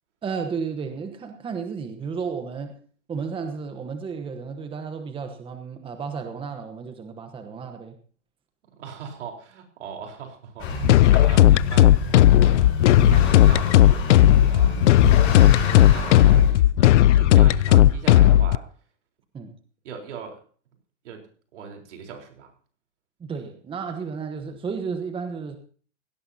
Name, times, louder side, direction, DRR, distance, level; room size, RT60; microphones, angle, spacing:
voice 1, 0.2-2.8 3.1-8.0 15.2-16.0 19.3-19.6 23.2-25.6, right 5 dB, 15° right, 7 dB, 1.2 m, -33 dB
voice 2, 8.7-14.8 15.9-18.7 19.8-20.4 21.0-22.5, right 6 dB, 70° right, 2 dB, 4.2 m, -40 dB
Motor vehicle (road) / Accelerating revving vroom, 10.6-16.5, left 3 dB, 35° left, 6.7 m, -28 dB
sound 1, 10.8-18.6, left 13 dB, 75° left, 0.6 m, -15 dB
17.0 x 17.0 x 2.8 m, 0.43 s
hypercardioid pair, 130°, 36 cm